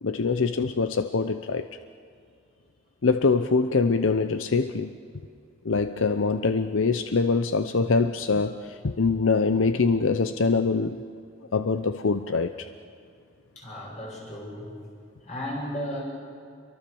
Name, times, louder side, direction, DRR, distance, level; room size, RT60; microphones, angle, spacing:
voice 1, 0.0-1.7 3.0-5.0 5.6-11.0 11.5-12.7, left 4 dB, 80° left, 10 dB, 0.7 m, -24 dB
voice 2, 13.5-14.7 15.2-16.0, equal, 35° left, -2 dB, 8.0 m, -34 dB
28.0 x 23.5 x 7.0 m, 2.4 s
head